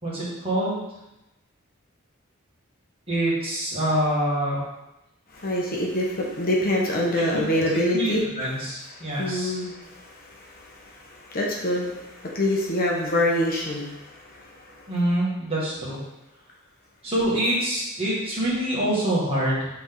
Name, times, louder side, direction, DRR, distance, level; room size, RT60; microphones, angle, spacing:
voice 1, 0.0-0.8 3.1-4.6 7.3-7.4 7.9-9.5 14.9-16.0 17.0-19.7, right 1 dB, 25° right, -7 dB, 2.1 m, -25 dB
voice 2, 5.3-8.2 8.9-14.8, left 1 dB, 45° left, -2 dB, 1.0 m, -26 dB
8.1 x 3.5 x 3.9 m, 0.95 s
head